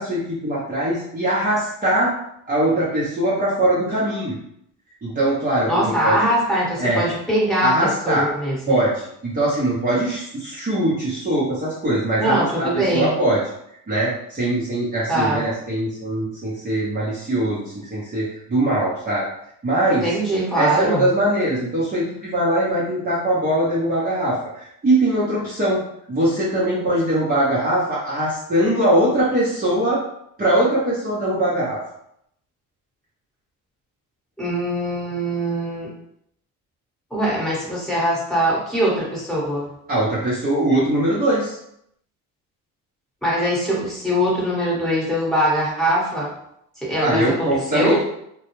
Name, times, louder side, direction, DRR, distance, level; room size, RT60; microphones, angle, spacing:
voice 1, 0.0-2.1 2.5-4.4 5.0-6.2 6.8-7.0 7.6-8.3 8.7-13.4 13.9-19.2 19.6-20.1 20.5-30.0 30.4-31.8 39.9-41.6 47.0-48.0, right 1 dB, 25° right, -8 dB, 0.9 m, -21 dB
voice 2, 5.7-8.7 12.2-13.1 15.1-15.5 20.0-21.0 34.4-35.9 37.1-39.7 43.2-46.3 46.8-48.0, equal, ahead, -6 dB, 1.3 m, -22 dB
2.2 x 2.1 x 3.1 m, 0.74 s
supercardioid pair, 80°, 37 cm